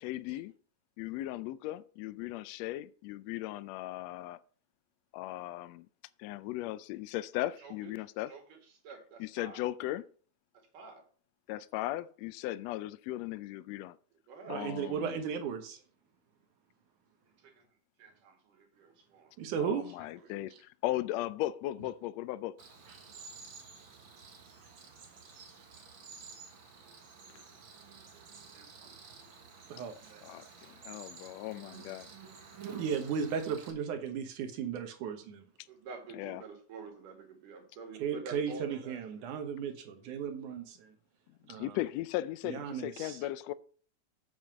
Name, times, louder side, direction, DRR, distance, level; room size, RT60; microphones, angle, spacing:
voice 1, 0.0-0.5 1.0-4.4 5.1-5.9 6.2-8.3 9.2-10.1 11.5-14.0 14.5-15.2 19.6-22.6 30.2-32.1 36.2-36.4 41.5-43.5, left 15 dB, 85° left, 1.5 m, -37 dB
voice 2, 7.6-7.9 8.3-9.7 10.5-11.0 14.3-15.1 17.2-19.3 19.8-20.3 26.8-27.0 28.5-29.1 35.7-39.2, right 4 dB, 90° right, 3.8 m, -50 dB
voice 3, 14.5-15.8 19.4-19.9 29.7-30.4 32.6-35.4 38.0-40.9 41.5-41.8 42.4-43.2, right 7 dB, 75° right, 2.6 m, -35 dB
Cricket, 22.6-33.7, right 5 dB, 45° right, 1.9 m, -51 dB
7.6 x 7.3 x 6.0 m
omnidirectional pair, 3.6 m